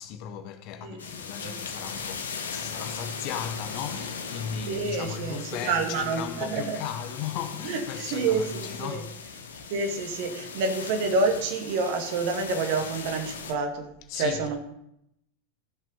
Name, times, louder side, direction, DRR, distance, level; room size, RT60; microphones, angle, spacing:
voice 1, 0.0-9.5 14.1-14.6, left 8 dB, 40° left, 1.0 m, -36 dB
sound 1, 1.0-13.5, left 5 dB, 65° left, 1.4 m, -38 dB
voice 2, 4.7-6.8 7.6-9.0 9.7-13.9 14.2-14.6, right 4 dB, 45° right, 2.1 m, -28 dB
14.5 x 7.4 x 5.5 m
figure-of-eight pair, 90°, 0 cm